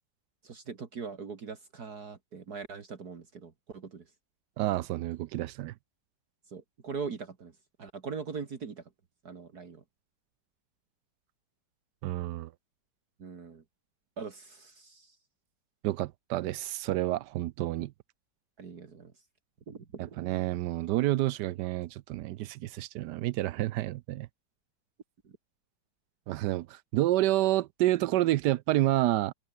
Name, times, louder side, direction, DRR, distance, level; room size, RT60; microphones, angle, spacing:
voice 1, 0.4-4.0 6.5-7.5 7.8-8.8 9.2-9.8 13.2-13.6 14.2-15.2 18.6-19.1 19.7-20.4 25.2-25.4, right 5 dB, 55° right, 2.4 m, -41 dB
voice 2, 4.6-5.7 12.0-12.5 15.8-17.9 20.2-24.3 26.3-29.3, right 15 dB, 75° right, 1.1 m, -29 dB
omnidirectional pair, 2.0 m